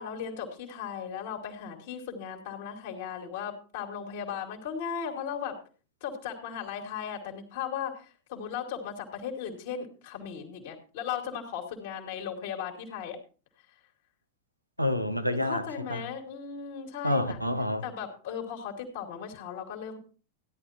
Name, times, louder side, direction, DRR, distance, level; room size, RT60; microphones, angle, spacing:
voice 1, 0.0-5.6 6.0-13.2 15.5-17.4 17.8-20.0, left 7 dB, 50° left, 2.8 m, -37 dB
voice 2, 14.8-16.0 17.0-17.8, left 1 dB, 90° right, 1.1 m, -28 dB
16.5 x 11.0 x 2.9 m
figure-of-eight pair, 90°, 0 cm